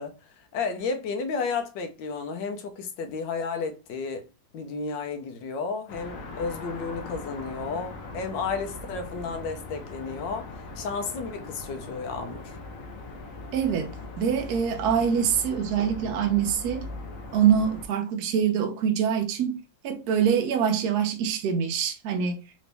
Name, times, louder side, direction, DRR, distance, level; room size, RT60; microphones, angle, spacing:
voice 1, 0.0-4.2 4.5-12.6, left 4 dB, 75° left, 1.4 m, -32 dB
sound 1, 5.9-17.9, left 3 dB, 55° left, 1.0 m, -40 dB
voice 2, 13.5-16.9 17.3-19.6 19.8-22.4, right 8 dB, 65° right, 1.1 m, -24 dB
4.0 x 2.6 x 3.3 m
omnidirectional pair, 2.1 m